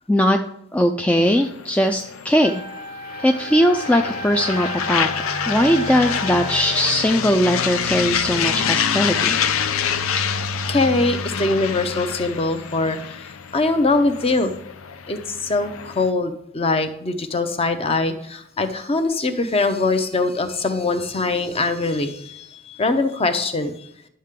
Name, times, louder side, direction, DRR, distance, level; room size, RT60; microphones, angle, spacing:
voice 1, 0.7-2.6 3.2-5.1 5.5-9.4, equal, 5° left, 4 dB, 0.3 m, -19 dB
sound 1, 1.3-16.1, left 7 dB, 90° left, 0.6 m, -26 dB
Wind instrument woodwind instrument, 2.4-6.9, equal, 45° left, 1.3 m, -33 dB
voice 2, 10.7-14.5 15.1-23.9, left 3 dB, 30° left, 8 dB, 0.7 m, -22 dB
11.0 x 6.5 x 3.6 m, 0.75 s
head